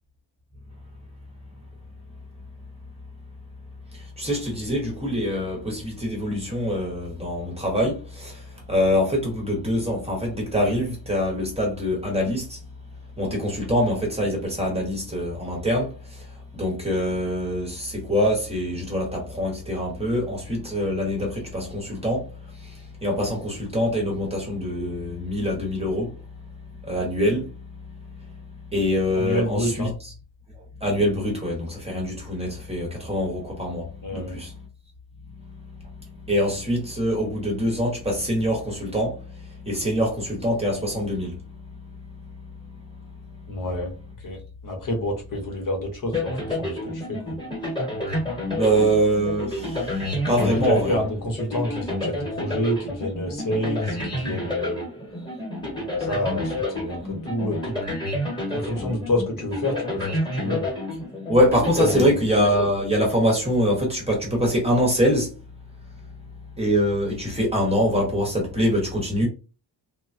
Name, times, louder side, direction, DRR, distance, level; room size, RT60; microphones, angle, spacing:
voice 1, 3.9-12.7 13.2-30.1 30.5-34.6 35.3-43.6 48.5-51.0 54.1-54.2 61.3-65.3 65.8-69.3, equal, 15° right, 0.8 m, -25 dB
voice 2, 29.2-29.9 34.0-34.4 43.5-43.9 44.2-47.4 50.4-54.8 56.0-57.7 58.5-60.7 61.8-61.9, left 1 dB, 45° left, 0.8 m, -28 dB
sound 1, 46.1-62.7, left 1 dB, 10° left, 1.1 m, -30 dB
3.1 x 2.2 x 2.5 m
wide cardioid pair, 180°, 45 cm